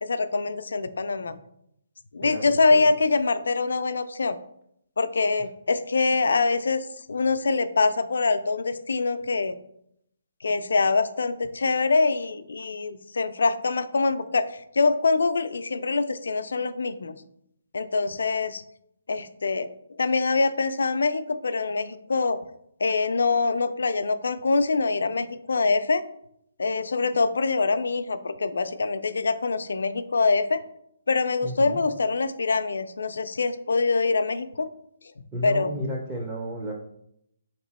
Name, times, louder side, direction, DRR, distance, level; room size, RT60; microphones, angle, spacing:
voice 1, 0.0-1.4 2.1-4.4 5.0-9.5 10.4-17.2 17.7-18.6 19.1-19.7 20.0-22.4 22.8-26.0 26.6-30.6 31.1-34.7 35.4-35.8, left 4 dB, 75° left, 11 dB, 0.4 m, -24 dB
voice 2, 2.2-2.9 31.4-31.8 35.3-36.7, equal, 10° right, -3 dB, 0.4 m, -33 dB
3.4 x 2.9 x 4.1 m, 0.74 s
hypercardioid pair, 170°, 0 cm